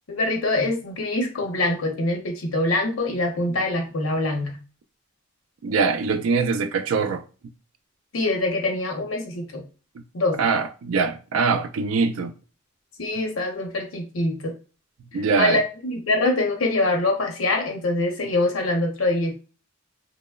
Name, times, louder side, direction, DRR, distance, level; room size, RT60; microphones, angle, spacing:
voice 1, 0.1-4.6 8.1-9.6 10.1-10.4 13.0-14.5 15.4-19.3, left 2 dB, 85° left, 0.7 m, -24 dB
voice 2, 5.6-7.2 10.0-10.1 10.4-12.3 15.1-15.6, right 4 dB, 75° right, 0.3 m, -23 dB
2.9 x 2.0 x 2.2 m
head